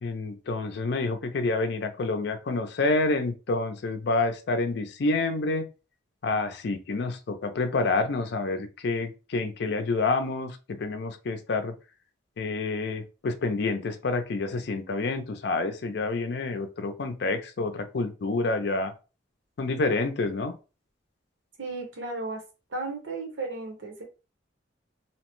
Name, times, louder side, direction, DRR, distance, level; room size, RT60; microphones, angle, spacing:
voice 1, 0.0-5.7 6.2-11.7 12.4-18.9 19.6-20.5, left 3 dB, 60° left, 7 dB, 0.4 m, -28 dB
voice 2, 21.6-22.4 22.7-24.0, right 3 dB, 90° right, 2 dB, 0.9 m, -34 dB
2.8 x 2.1 x 3.0 m, 0.32 s
head